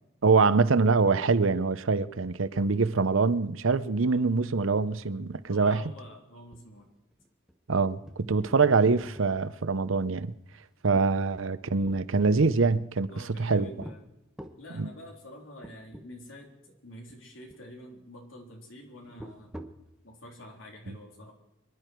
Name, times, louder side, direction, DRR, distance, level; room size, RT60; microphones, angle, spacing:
voice 1, 0.2-5.8 7.7-10.3 10.8-13.1 13.4-13.7 14.7-14.9, right 4 dB, 80° right, 0.7 m, -24 dB
sound 1, 4.0-4.5 4.8-4.9 5.3-5.5 6.0-6.1 6.5-8.7 9.0-9.7 10.2-12.0 12.7-13.3 13.8-14.0 14.4-14.7 15.2-15.3 15.6-16.1 16.4-16.5 17.1-17.7 19.0-19.9, equal, 5° right, 1.2 m, -47 dB
voice 2, 5.5-6.9 13.1-14.1 14.6-19.5 20.0-21.3, equal, 75° left, 3.6 m, -47 dB
25.5 x 11.0 x 4.6 m
head